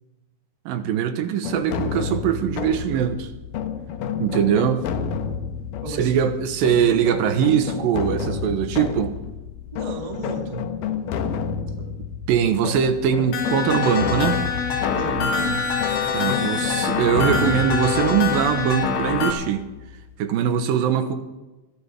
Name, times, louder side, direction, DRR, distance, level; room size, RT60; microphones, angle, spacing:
voice 1, 0.7-3.3 4.2-4.8 5.9-9.1 12.3-14.4 16.1-19.7 20.2-21.2, right 8 dB, 90° right, 8 dB, 2.8 m, -22 dB
sound 1, 1.4-20.1, left 7 dB, 80° left, 2.6 m, -30 dB
voice 2, 5.8-6.3 9.7-10.8 11.8-11.9 15.0-15.7, right 2 dB, 20° right, 2 dB, 1.0 m, -33 dB
sound 2, 13.3-19.3, left 6 dB, 60° left, 2.5 m, -24 dB
23.0 x 13.0 x 3.5 m, 1.1 s
omnidirectional pair, 4.0 m